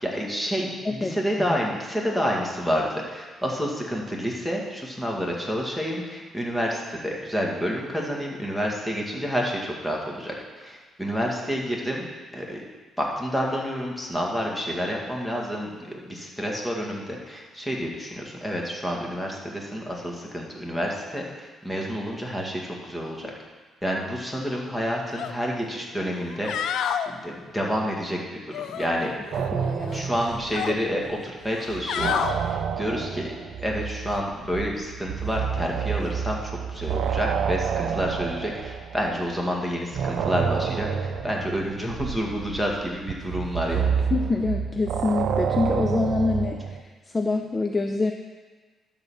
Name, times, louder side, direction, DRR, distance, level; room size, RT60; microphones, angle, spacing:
voice 1, 0.0-12.1 12.3-12.6 13.0-23.3 23.8-26.5 27.1-29.2 29.9-44.0, equal, 5° left, -2 dB, 2.0 m, -29 dB
voice 2, 0.9-1.2 29.5-30.1 44.1-46.8 47.1-48.1, left 3 dB, 25° left, 5 dB, 0.6 m, -26 dB
sound 1, 25.1-25.3 25.7-25.8 26.3-27.1 28.5-29.5 29.8-30.8 31.5-32.3 34.0-34.2, left 8 dB, 75° left, 0.5 m, -29 dB
sound 2, 29.3-31.2 31.5-39.4 39.9-46.8, right 7 dB, 70° right, 0.5 m, -29 dB
12.0 x 4.1 x 7.0 m, 1.4 s
cardioid pair, 90°, 0 cm